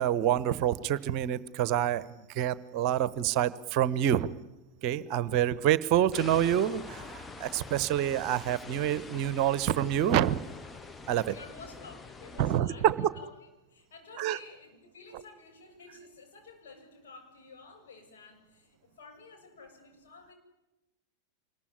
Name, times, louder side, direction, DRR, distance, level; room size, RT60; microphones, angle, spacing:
voice 1, 0.0-4.3 4.8-10.4 11.1-11.3 12.4-13.1 14.2-14.4, right 11 dB, 40° right, 18 dB, 1.0 m, -27 dB
sound 1, 6.1-12.6, left 4 dB, 15° left, 0.9 m, -45 dB
voice 2, 11.3-20.3, left 4 dB, 60° left, 2 dB, 7.4 m, -51 dB
26.0 x 22.0 x 10.0 m, 1.0 s
figure-of-eight pair, 90°, 0 cm